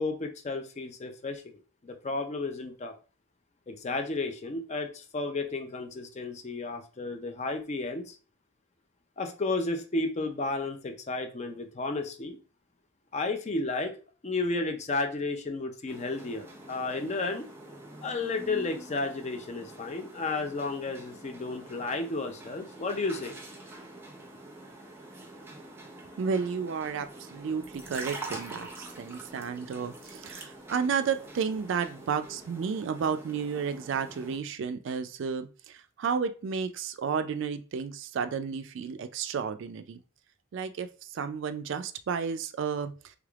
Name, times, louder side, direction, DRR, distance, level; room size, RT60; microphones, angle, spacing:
voice 1, 0.0-2.9 3.7-8.2 9.2-12.4 13.1-17.4 18.0-23.4, left 3 dB, 35° left, 6 dB, 0.5 m, -33 dB
sound 1, 15.9-34.4, right 2 dB, 10° right, 0.6 m, -45 dB
voice 2, 26.2-40.0 40.5-42.9, right 6 dB, 60° right, 9 dB, 0.3 m, -32 dB
3.3 x 3.3 x 2.3 m, 0.35 s
head